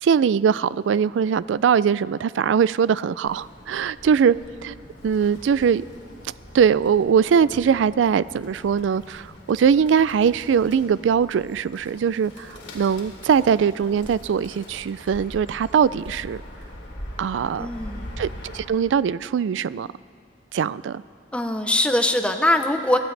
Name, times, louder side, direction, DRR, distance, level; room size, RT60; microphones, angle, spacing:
voice 1, 0.0-4.3 4.6-4.7 5.0-5.8 6.5-12.5 12.7-16.4 17.2-17.7 18.2-18.3 18.5-19.9 20.5-21.0, right 7 dB, 70° right, 19 dB, 0.3 m, -21 dB
Bird, 3.2-18.6, equal, 70° left, 2.8 m, -42 dB
voice 2, 17.6-18.1 21.3-23.0, left 1 dB, 5° left, 6 dB, 0.6 m, -22 dB
23.0 x 15.5 x 3.3 m, 2.1 s
head